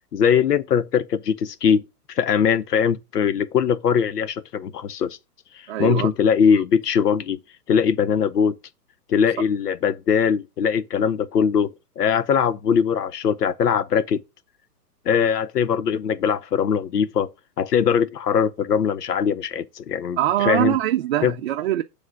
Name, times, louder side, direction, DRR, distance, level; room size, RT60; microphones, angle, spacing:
voice 1, 0.1-5.2 5.8-7.4 7.7-8.6 9.1-14.2 15.1-20.8 21.2-21.3, left 7 dB, 70° left, 0.8 m, -21 dB
voice 2, 5.7-6.1 20.2-21.8, right 13 dB, 40° right, 0.6 m, -22 dB
9.0 x 3.3 x 5.9 m
figure-of-eight pair, 120°, 49 cm